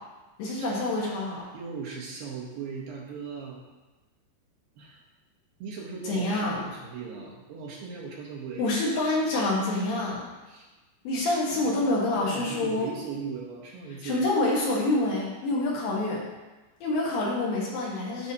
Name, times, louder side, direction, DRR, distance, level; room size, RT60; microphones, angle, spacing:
voice 1, 0.4-1.4 6.1-6.6 8.6-10.2 11.0-12.9 14.0-16.2 16.8-18.3, left 2 dB, 65° left, -4 dB, 2.8 m, -27 dB
voice 2, 1.5-3.6 4.8-5.0 5.6-8.7 10.5-10.7 11.5-11.9 12.2-14.2, right 5 dB, 70° right, -4 dB, 2.5 m, -38 dB
12.0 x 4.8 x 2.8 m, 1.2 s
omnidirectional pair, 4.7 m